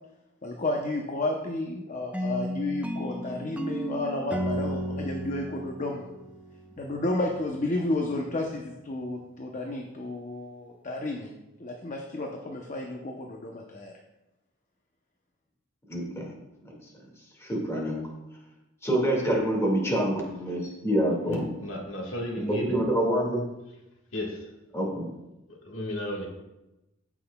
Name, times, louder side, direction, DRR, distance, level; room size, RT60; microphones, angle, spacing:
voice 1, 0.4-6.1 6.8-11.3 11.6-13.9, left 2 dB, 40° left, 1 dB, 0.8 m, -32 dB
sound 1, 2.1-7.0, equal, 5° right, 0.4 m, -34 dB
voice 2, 15.9-16.3 16.7-16.8 17.4-18.0 18.8-21.4 22.5-23.4 24.7-25.1, right 1 dB, 15° left, -2 dB, 2.0 m, -26 dB
voice 3, 21.3-22.8 24.1-24.5 25.5-26.3, equal, 85° left, 0 dB, 1.7 m, -34 dB
14.0 x 6.0 x 2.3 m, 0.97 s
head